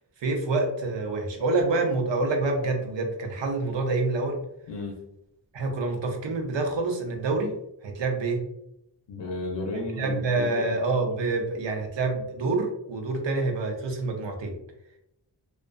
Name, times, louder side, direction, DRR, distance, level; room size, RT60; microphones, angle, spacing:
voice 1, 0.2-4.4 5.5-7.5 7.8-8.4 9.9-14.6, right 3 dB, 80° right, 3 dB, 0.6 m, -27 dB
voice 2, 9.1-10.7, left 2 dB, 75° left, 0 dB, 0.6 m, -33 dB
2.4 x 2.3 x 2.2 m, 0.80 s
cardioid pair, 50°, 44 cm